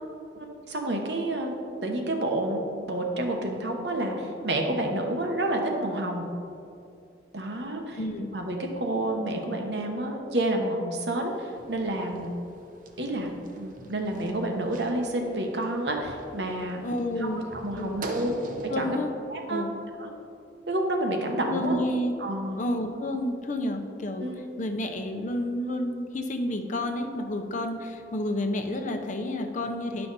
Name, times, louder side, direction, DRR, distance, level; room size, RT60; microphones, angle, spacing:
voice 1, 0.3-1.5 1.8-6.2 7.3-8.0 8.3-12.3 13.0-13.3 13.6-16.8 17.2-18.3 18.8-19.0 19.3-19.6 20.0-20.1 20.7-21.7 22.2-22.6 24.2-24.4, right 1 dB, 75° right, 2 dB, 1.1 m, -29 dB
voice 2, 7.9-8.3 16.8-17.4 17.8-18.1 18.7-19.1 19.5-19.7 21.5-22.1 22.6-24.3 24.6-30.1, left 1 dB, 45° left, 5 dB, 0.7 m, -30 dB
sound 1, 11.3-18.7, right 1 dB, 50° right, 0.8 m, -43 dB
10.0 x 5.7 x 4.1 m, 2.5 s
head